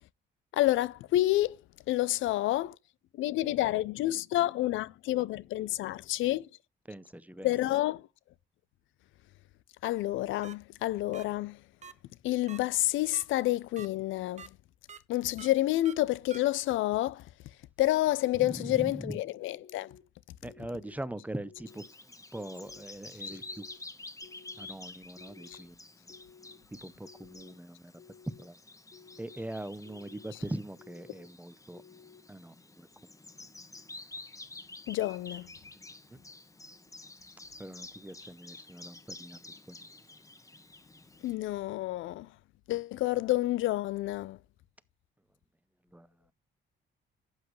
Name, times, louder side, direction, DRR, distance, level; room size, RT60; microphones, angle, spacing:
voice 1, 0.5-1.6 1.9-2.8 3.1-6.5 7.4-8.1 9.8-11.6 12.2-14.5 15.1-17.3 17.8-20.0 25.5-25.6 34.9-35.5 41.2-42.3 42.7-44.4, left 15 dB, 80° left, 0.4 m, -29 dB
voice 2, 6.9-7.5 18.4-19.2 20.4-21.9 22.3-23.6 24.6-25.8 26.8-27.9 28.4-28.6 29.2-31.8 32.3-32.9 36.1-36.2 37.6-39.4 39.7-39.8 45.9-46.1, right 1 dB, 5° right, 0.6 m, -41 dB
sound 1, 10.4-10.5 11.1-11.2 11.8-11.9 12.5-12.6 13.1-13.2 13.8-13.9 14.4-14.5 14.9-15.0 15.4-15.5 15.9-16.0 16.3-16.4, right 6 dB, 35° right, 0.9 m, -46 dB
sound 2, 19.5-20.0 20.5-21.0 21.4-21.9 22.3-22.8 23.3-23.8 24.2-24.7 25.2-25.6 26.1-26.6 27.0-27.5 28.0-28.5 28.9-29.4 29.8-30.3 30.8-31.3 31.7-32.2, left 6 dB, 40° left, 3.3 m, -55 dB
Bird vocalization bird call bird song, 21.7-41.3, left 2 dB, 15° left, 1.1 m, -49 dB
11.5 x 8.2 x 3.1 m
cardioid pair, 90°, 20 cm